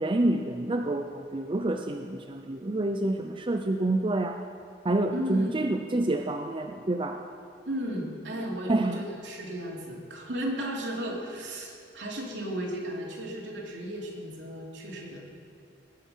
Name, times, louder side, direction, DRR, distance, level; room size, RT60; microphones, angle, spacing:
voice 1, 0.0-4.4 4.8-7.2 8.7-9.0, right 2 dB, 30° right, 5 dB, 0.6 m, -28 dB
voice 2, 5.1-5.5 7.7-15.2, equal, 75° right, -2 dB, 3.0 m, -35 dB
19.0 x 9.9 x 5.6 m, 2.6 s
head